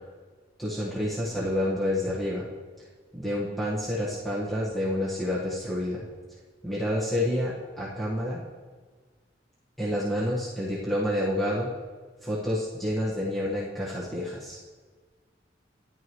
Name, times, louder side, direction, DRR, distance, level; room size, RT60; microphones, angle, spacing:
voice 1, 0.6-2.5 3.1-6.0 6.6-8.4 9.8-11.7 12.2-14.6, left 1 dB, ahead, -8 dB, 1.5 m, -29 dB
13.5 x 11.0 x 3.1 m, 1.5 s
head